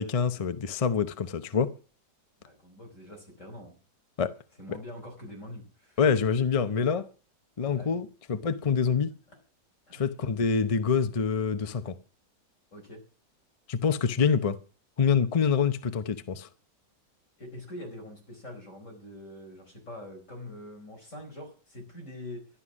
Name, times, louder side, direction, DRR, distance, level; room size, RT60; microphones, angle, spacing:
voice 1, 0.0-1.7 4.2-4.3 4.7-4.8 6.0-7.0 7.6-9.1 9.9-12.0 13.7-14.6 15.0-16.5, left 6 dB, 65° left, 0.3 m, -26 dB
voice 2, 2.4-3.8 4.6-6.0 7.6-7.9 9.9-10.0 12.7-13.0 17.4-22.5, left 1 dB, 45° left, 5.1 m, -44 dB
12.5 x 11.5 x 6.2 m
omnidirectional pair, 1.9 m